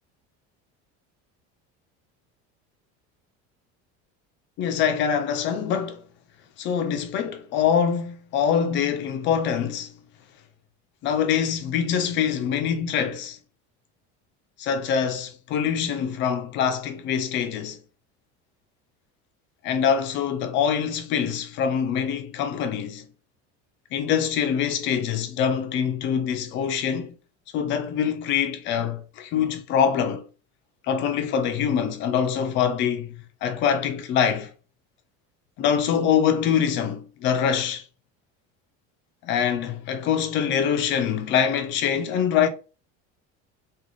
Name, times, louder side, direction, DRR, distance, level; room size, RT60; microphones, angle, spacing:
voice 1, 4.6-6.0 6.6-9.9 11.0-13.4 14.6-17.8 19.6-23.1 23.9-27.1 27.5-30.2 30.9-34.5 35.6-37.8 39.2-42.5, left 8 dB, 40° left, 0.5 m, -24 dB
3.1 x 2.4 x 3.8 m
cardioid pair, 180°, 29 cm